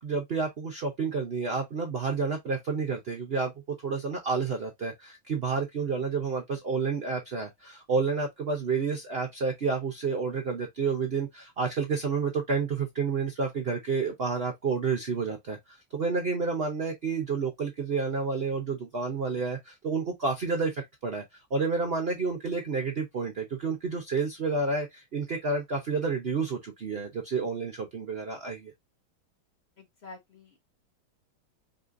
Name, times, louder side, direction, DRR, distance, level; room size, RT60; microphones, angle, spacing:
voice 1, 0.0-21.2 21.5-28.7, right 4 dB, 75° right, 0.5 m, -30 dB
voice 2, 29.8-30.7, left 3 dB, 35° left, 1.5 m, -48 dB
5.4 x 3.3 x 2.5 m
omnidirectional pair, 2.3 m